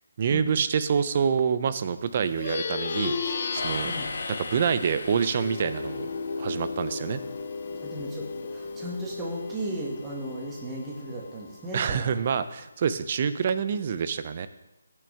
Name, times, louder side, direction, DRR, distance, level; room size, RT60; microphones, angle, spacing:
voice 1, 0.2-3.9 4.4-6.1 6.4-7.2 11.7-14.5, right 7 dB, 40° right, 12 dB, 0.7 m, -27 dB
Plucked string instrument, 2.2-12.0, left 4 dB, 50° left, 0.8 m, -35 dB
sound 1, 3.6-6.7, left 3 dB, 70° left, 1.9 m, -38 dB
voice 2, 7.7-12.1, right 1 dB, 15° right, -4 dB, 2.0 m, -36 dB
15.0 x 6.4 x 3.5 m, 0.95 s
figure-of-eight pair, 155°, 0 cm